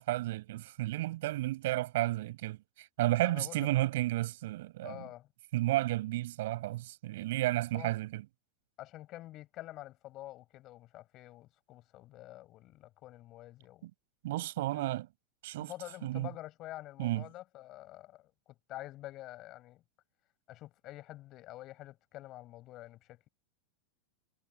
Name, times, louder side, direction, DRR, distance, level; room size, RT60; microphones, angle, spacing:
voice 1, 0.0-5.0 5.5-8.2 13.8-13.9 14.2-15.1 15.4-15.7 16.0-16.3 17.0-17.2, right 16 dB, 70° right, 6.3 m, -32 dB
voice 2, 3.2-3.7 4.8-5.3 7.7-8.0 8.8-13.9 14.6-14.9 15.6-19.8 20.5-23.3, left 16 dB, 35° left, 7.2 m, -48 dB
supercardioid pair, 150°, 0 cm